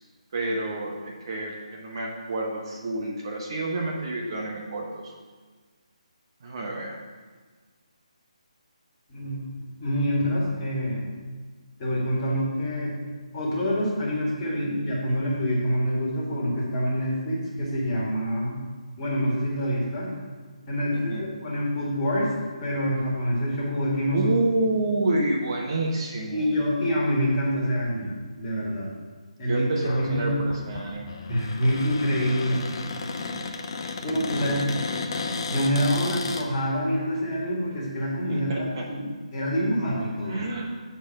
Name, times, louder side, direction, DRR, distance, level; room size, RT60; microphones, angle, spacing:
voice 1, 0.3-5.1 6.4-7.0 20.9-21.2 24.1-26.4 29.5-31.1 34.2-34.8 35.1-35.4 38.3-38.8 40.3-40.7, right 2 dB, 40° right, 0 dB, 1.0 m, -29 dB
voice 2, 9.1-11.0 11.8-12.9 13.3-18.6 19.0-20.1 20.7-24.3 26.3-28.1 28.4-28.9 29.4-30.4 31.3-32.7 34.0-34.6 35.5-40.4, equal, 25° left, -5 dB, 1.9 m, -26 dB
Cupboard open or close, 29.7-36.4, left 4 dB, 40° left, 0.7 m, -33 dB
7.0 x 4.6 x 5.9 m, 1.4 s
figure-of-eight pair, 145°, 4 cm